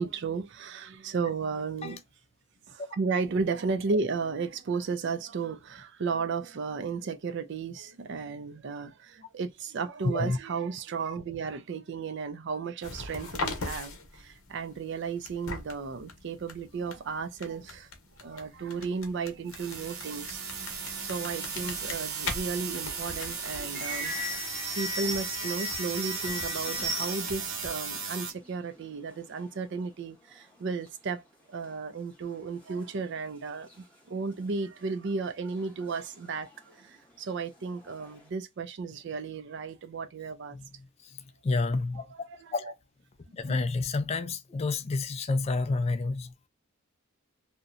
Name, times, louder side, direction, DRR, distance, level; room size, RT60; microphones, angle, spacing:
voice 1, 0.0-2.0 2.7-17.9 18.2-20.8 21.0-24.5 24.7-31.2 31.5-40.6 41.9-42.7 43.4-43.6, right 4 dB, 55° right, 0.4 m, -34 dB
voice 2, 10.0-10.4 40.5-40.7 41.4-42.0 42.5-42.7 43.3-46.3, left 3 dB, 30° left, 0.3 m, -29 dB
sound 1, 12.8-27.9, left 3 dB, 70° left, 0.8 m, -42 dB
sound 2, 19.5-28.3, right 5 dB, 70° right, 0.8 m, -36 dB
sound 3, 22.6-27.6 27.8-27.9 28.1-29.6 30.0-30.1 30.4-30.9 31.6-31.7 32.3-33.2 33.7-33.8 34.9-35.1 35.5-36.9 37.3-38.3, equal, 5° left, 0.8 m, -38 dB
2.7 x 2.1 x 2.4 m
head